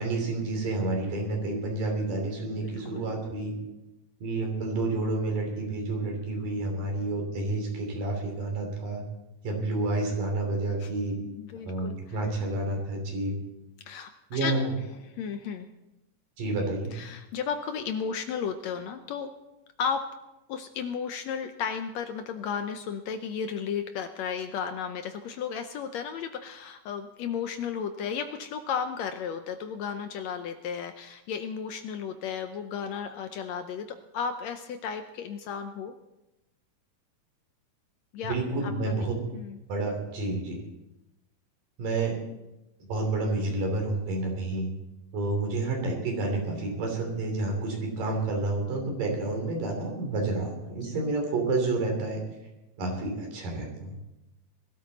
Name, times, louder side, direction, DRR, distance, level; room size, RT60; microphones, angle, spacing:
voice 1, 0.0-3.5 4.2-9.0 9.4-11.1 11.7-13.3 14.3-14.7 16.4-17.0 38.2-39.2 39.7-40.6 41.8-42.1 42.9-44.7 45.1-52.2 52.8-53.9, right 2 dB, 80° right, 1 dB, 4.8 m, -29 dB
voice 2, 2.6-3.1 10.8-10.9 11.4-12.2 13.8-14.6 15.1-15.7 16.9-19.3 19.8-20.0 20.5-35.9 38.1-38.4 38.6-39.1 39.3-39.6, left 7 dB, 80° left, 8 dB, 1.6 m, -34 dB
20.0 x 13.0 x 4.1 m, 0.95 s
omnidirectional pair, 3.8 m